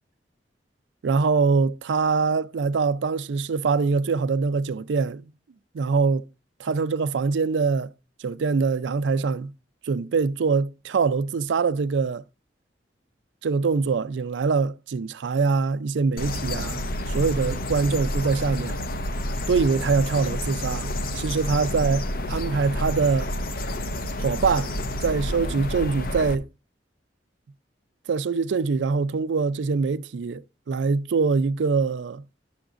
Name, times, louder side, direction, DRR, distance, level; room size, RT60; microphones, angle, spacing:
voice 1, 1.0-5.3 5.7-6.3 6.6-7.9 8.2-9.5 9.8-12.2 13.4-16.8 17.1-18.8 19.5-22.0 22.3-23.3 24.2-24.7 25.0-26.5 28.1-30.4 30.7-32.2, right 4 dB, 75° right, 0.4 m, -23 dB
sound 1, 16.2-26.3, left 1 dB, 55° left, 0.6 m, -29 dB
11.5 x 6.9 x 2.5 m
head